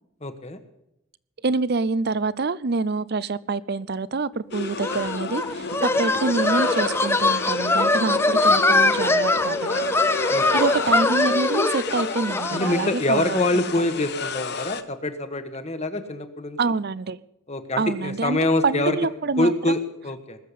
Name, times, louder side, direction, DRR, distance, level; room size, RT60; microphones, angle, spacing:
voice 1, 0.2-0.6 10.3-10.6 12.5-16.6 17.5-19.0 19.4-20.4, left 2 dB, 30° left, 9 dB, 1.3 m, -25 dB
voice 2, 1.4-9.6 10.5-13.9 16.6-17.2 17.8-19.8, right 4 dB, 50° right, 19 dB, 0.5 m, -26 dB
sound 1, 4.5-14.8, left 4 dB, 50° left, 0.9 m, -31 dB
sound 2, 4.8-12.9, left 2 dB, 10° left, 0.5 m, -22 dB
20.0 x 7.5 x 8.4 m, 0.83 s
head